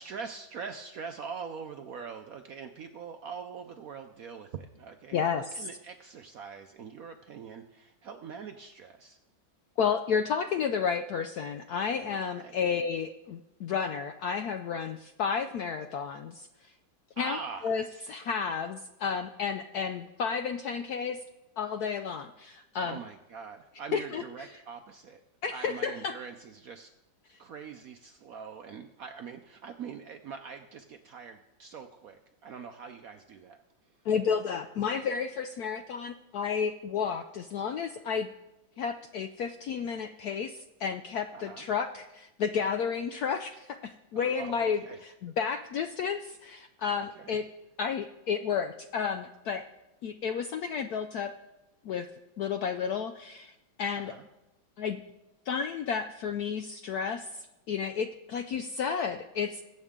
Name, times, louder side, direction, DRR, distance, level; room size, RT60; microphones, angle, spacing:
voice 1, 0.0-9.2 12.0-12.6 17.2-17.8 22.8-25.2 25.5-26.9 27.4-33.6 41.3-41.7 44.1-45.0 47.0-47.4 54.0-54.3, right 6 dB, 70° right, 6 dB, 0.8 m, -43 dB
voice 2, 5.1-5.7 9.8-16.5 17.2-17.4 17.6-17.8 18.1-21.2 21.6-23.0 23.9-24.5 25.4-26.2 34.1-38.3 38.8-44.8 45.2-47.4 47.8-49.6 50.0-51.3 51.8-52.1 52.4-53.5 53.8-54.1 54.8-55.0 55.5-57.3 57.7-59.6, left 6 dB, 75° left, 8 dB, 0.9 m, -31 dB
21.0 x 8.1 x 3.7 m, 0.94 s
omnidirectional pair, 2.1 m